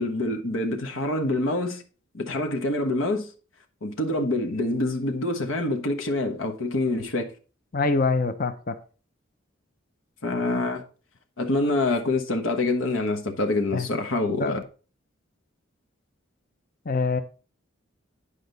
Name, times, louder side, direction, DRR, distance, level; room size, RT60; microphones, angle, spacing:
voice 1, 0.0-1.8 2.1-3.3 3.8-7.3 10.2-10.8 11.4-14.6, left 2 dB, 80° left, 1.2 m, -26 dB
voice 2, 7.7-8.8 13.7-13.9 14.4-14.6 16.9-17.2, left 3 dB, 45° left, 0.7 m, -24 dB
10.0 x 5.1 x 4.0 m
head